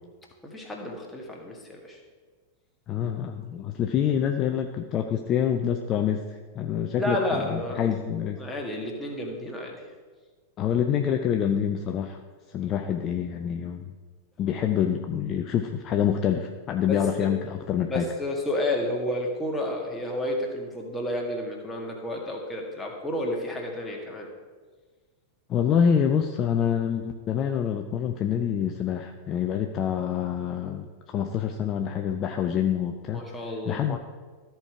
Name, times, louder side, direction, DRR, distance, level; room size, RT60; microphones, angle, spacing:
voice 1, 0.4-2.0 7.0-7.8 8.4-9.8 16.9-17.3 17.9-24.3 33.1-33.9, left 1 dB, 10° left, -1 dB, 1.7 m, -31 dB
voice 2, 2.9-8.4 10.6-12.2 12.5-13.9 14.4-18.1 25.5-33.2 33.6-34.0, left 8 dB, 30° left, 5 dB, 0.5 m, -26 dB
13.5 x 4.6 x 4.8 m, 1.5 s
figure-of-eight pair, 90°, 0 cm